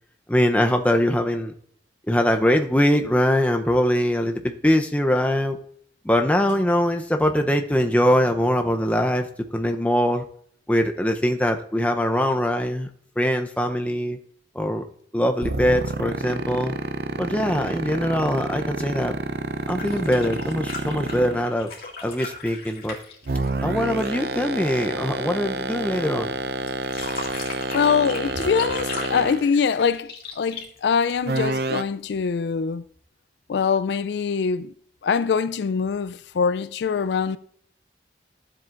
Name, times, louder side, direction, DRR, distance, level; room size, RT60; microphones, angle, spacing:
voice 1, 0.3-1.5 2.1-5.6 6.0-9.3 9.5-10.2 10.7-12.9 13.2-14.2 14.5-14.8 15.1-16.7 17.2-19.2 19.7-21.7 22.0-22.9 23.6-26.3, equal, 10° left, 0.6 m, -22 dB
sound 1, 15.4-21.5 23.2-29.5 31.2-31.8, right 2 dB, 60° right, 0.6 m, -28 dB
sound 2, 19.6-24.3 26.7-31.5 33.0-33.1, left 3 dB, 55° left, 2.2 m, -37 dB
voice 2, 27.7-32.8 33.5-34.7 35.0-37.4, left 6 dB, 75° left, 0.4 m, -23 dB
13.0 x 7.6 x 2.5 m
head